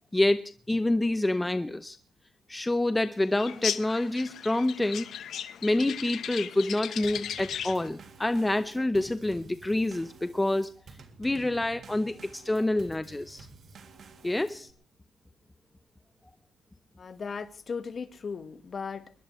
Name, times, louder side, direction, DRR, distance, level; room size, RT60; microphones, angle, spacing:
voice 1, 0.1-2.0 2.5-5.1 5.6-10.7 11.2-13.5 14.2-14.7, left 1 dB, 10° left, 0.8 m, -27 dB
sound 1, 3.4-7.9, left 9 dB, 70° left, 1.0 m, -36 dB
Drum kit / Snare drum / Bass drum, 7.0-14.7, right 4 dB, 55° right, 2.5 m, -51 dB
voice 2, 17.0-19.1, left 5 dB, 45° left, 1.4 m, -37 dB
22.0 x 21.0 x 3.2 m
cardioid pair, 90°, 0 cm